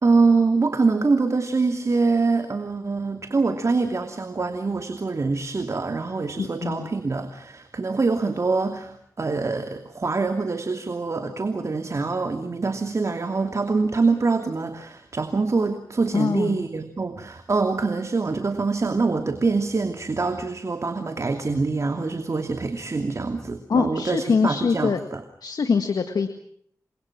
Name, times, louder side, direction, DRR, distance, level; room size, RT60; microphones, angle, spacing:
voice 1, 0.0-25.2, right 4 dB, 50° right, 7 dB, 2.7 m, -24 dB
voice 2, 6.4-6.9 16.1-16.6 23.7-25.0 25.4-26.3, left 5 dB, 80° left, 8 dB, 1.8 m, -23 dB
29.5 x 25.5 x 6.1 m, 0.67 s
cardioid pair, 65°, 7 cm